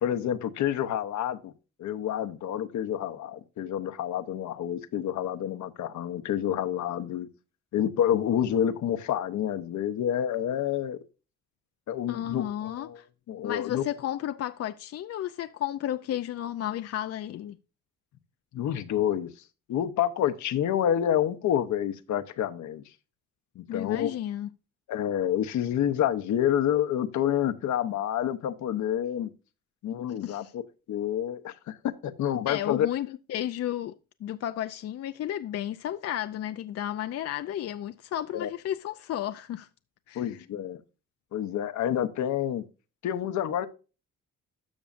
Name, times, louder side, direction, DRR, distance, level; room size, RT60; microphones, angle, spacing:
voice 1, 0.0-1.5 1.8-7.3 7.7-11.0 11.9-13.0 13.3-13.8 18.5-19.3 19.7-22.8 23.6-24.1 24.9-29.3 29.8-30.6 30.9-31.8 32.0-32.9 38.3-38.5 40.1-40.8 41.3-42.6 43.0-43.7, left 10 dB, 70° left, 0.9 m, -28 dB
voice 2, 12.1-13.1 13.4-17.6 23.7-24.5 30.2-30.5 32.5-33.9 34.2-39.7 40.1-40.3, left 11 dB, 55° left, 0.5 m, -33 dB
12.5 x 6.2 x 2.5 m
cardioid pair, 90°, 30 cm